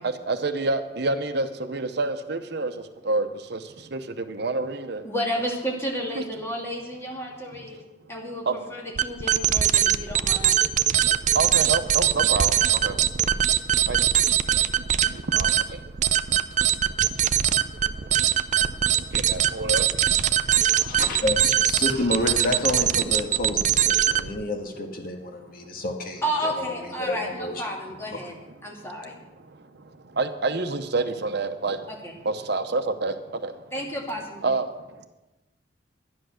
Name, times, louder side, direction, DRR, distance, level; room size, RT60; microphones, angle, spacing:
voice 1, 0.0-5.0 6.2-6.3 8.4-8.6 10.0-10.1 10.6-10.7 11.0-13.2 13.9-14.2 14.5-14.6 15.1-15.8 16.5-21.0 25.7-25.8 28.7-28.8 29.4-31.9 32.2-33.6 34.4-35.1, right 3 dB, 60° right, 9 dB, 0.8 m, -29 dB
voice 2, 5.0-7.8 8.1-8.4 8.7-10.6 26.2-28.3 28.6-29.2 31.9-32.1 33.7-34.4, equal, 15° left, -2 dB, 2.6 m, -31 dB
sound 1, 9.0-24.4, right 10 dB, 40° right, 0.5 m, -22 dB
voice 3, 20.6-26.2 26.6-26.7 27.0-27.7 28.2-28.3, left 2 dB, 50° left, 3 dB, 1.6 m, -29 dB
11.0 x 10.5 x 6.4 m, 1.0 s
head